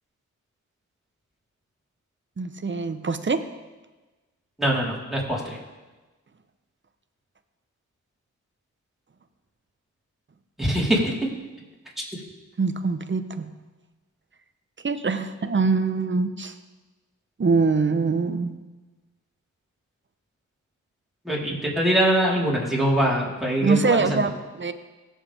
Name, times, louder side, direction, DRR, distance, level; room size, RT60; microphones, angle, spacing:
voice 1, 2.4-3.4 12.6-13.5 14.8-16.5 17.4-18.6 23.6-24.7, right 4 dB, 40° right, 10 dB, 0.9 m, -23 dB
voice 2, 4.6-5.6 10.6-11.3 21.2-24.2, right 1 dB, ahead, -5 dB, 4.0 m, -23 dB
17.0 x 7.4 x 3.5 m, 1.2 s
cardioid pair, 45°, 30 cm